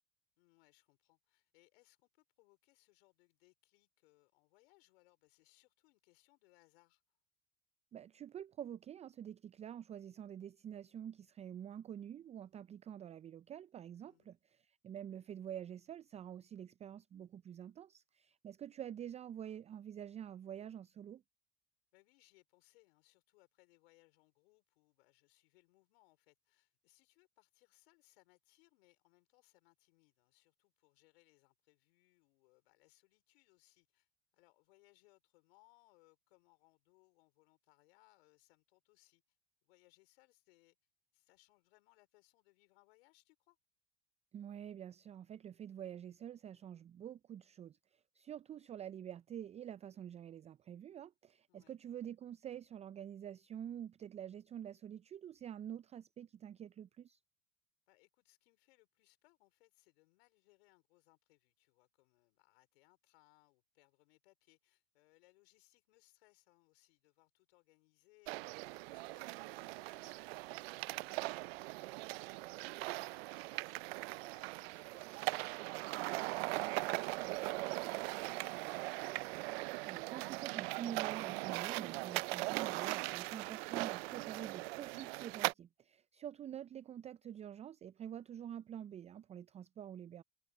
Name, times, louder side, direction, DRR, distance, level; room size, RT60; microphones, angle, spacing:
voice 1, 0.4-7.0 14.0-14.3 21.9-39.4 39.6-40.8 41.1-43.6 51.5-51.8 57.9-70.4 70.7-78.9, left 23 dB, 70° left, 5.0 m, -71 dB
voice 2, 7.9-21.2 44.3-57.2 79.8-90.2, right 9 dB, 20° right, 0.4 m, -47 dB
sound 1, 68.3-85.5, right 23 dB, 70° right, 0.6 m, -40 dB
hypercardioid pair, 90°, 32 cm